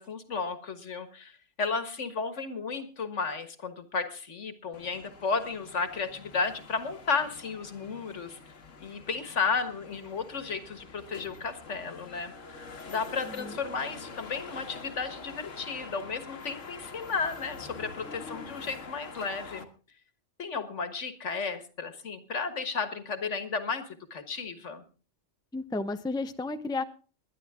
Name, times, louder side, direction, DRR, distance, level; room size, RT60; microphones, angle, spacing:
voice 1, 0.0-8.4 8.8-12.3 12.9-19.7 20.4-24.8, left 5 dB, 70° left, 10 dB, 1.9 m, -33 dB
sound 1, 4.7-19.6, left 4 dB, 85° left, 1.9 m, -46 dB
voice 2, 13.2-13.6 25.5-26.8, left 3 dB, 5° left, 9 dB, 0.6 m, -33 dB
20.5 x 11.0 x 3.6 m, 0.37 s
omnidirectional pair, 1.3 m